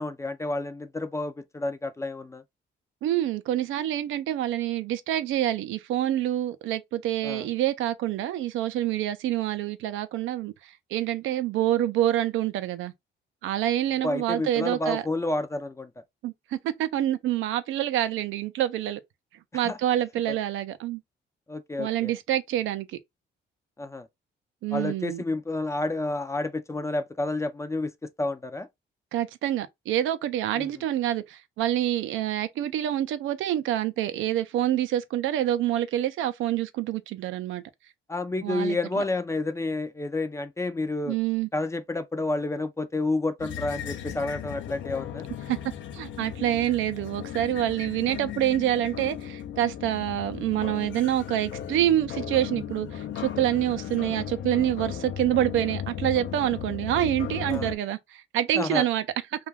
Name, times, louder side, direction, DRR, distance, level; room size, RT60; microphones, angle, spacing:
voice 1, 0.0-2.4 7.2-7.5 14.0-15.9 19.6-19.8 20.3-20.4 21.5-22.1 23.8-24.1 24.7-28.7 30.6-30.8 38.1-41.2 41.5-45.3 57.5-57.7 58.6-58.9, left 2 dB, 15° left, 0.3 m, -30 dB
voice 2, 3.0-10.5 10.9-12.9 13.4-15.0 16.2-16.3 16.8-19.0 19.5-21.0 21.8-22.9 24.6-25.2 29.1-37.6 38.4-39.0 41.1-41.5 45.5-45.6 45.9-58.0 58.3-59.0, right 12 dB, 80° right, 0.4 m, -27 dB
sound 1, 43.4-57.8, left 9 dB, 70° left, 0.5 m, -36 dB
2.3 x 2.2 x 3.2 m
cardioid pair, 90°, 20 cm